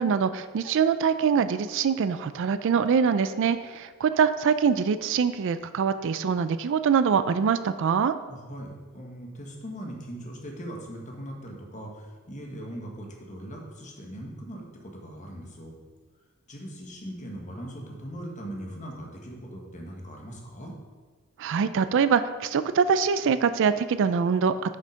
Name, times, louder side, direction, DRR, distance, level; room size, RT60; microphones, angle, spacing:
voice 1, 0.0-8.1 21.4-24.8, right 6 dB, 60° right, 12 dB, 0.4 m, -24 dB
voice 2, 8.3-15.7 16.5-20.7, equal, 35° left, 0 dB, 1.4 m, -40 dB
6.4 x 5.6 x 5.1 m, 1.5 s
head